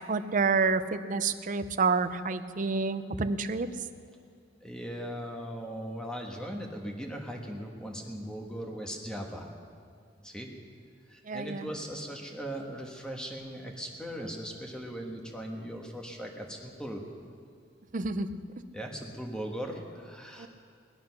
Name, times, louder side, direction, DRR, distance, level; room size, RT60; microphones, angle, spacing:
voice 1, 0.1-3.7 11.3-11.7 17.9-18.3 20.4-20.5, right 4 dB, 45° right, 11 dB, 0.6 m, -28 dB
voice 2, 4.6-9.5 10.2-10.5 11.1-17.1 18.7-20.5, equal, 5° left, 1 dB, 1.5 m, -39 dB
19.5 x 10.5 x 5.9 m, 2.3 s
head